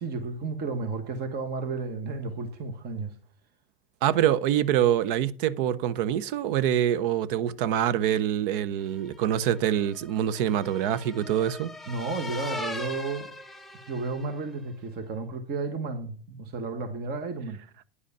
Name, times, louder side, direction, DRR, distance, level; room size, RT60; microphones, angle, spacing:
voice 1, 0.0-3.1 11.9-13.3 13.9-17.6, right 4 dB, 35° right, 1.3 m, -32 dB
voice 2, 4.0-11.7, right 10 dB, 60° right, 0.7 m, -25 dB
sound 1, 9.1-14.5, left 2 dB, ahead, 0.5 m, -40 dB
9.8 x 5.1 x 6.7 m
supercardioid pair, 130°, 29 cm